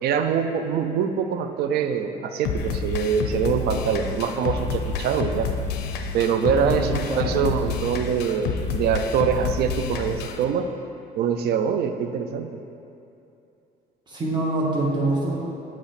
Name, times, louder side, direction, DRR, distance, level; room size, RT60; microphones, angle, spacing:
voice 1, 0.0-5.5 6.1-10.7 11.2-12.6, right 7 dB, 70° right, 7 dB, 0.4 m, -24 dB
sound 1, 2.4-10.4, left 5 dB, 80° left, 0.5 m, -29 dB
voice 2, 6.6-7.4 14.1-15.3, right 2 dB, 25° right, -5 dB, 1.5 m, -25 dB
8.4 x 3.0 x 4.1 m, 2.7 s
cardioid pair, 110°, 17 cm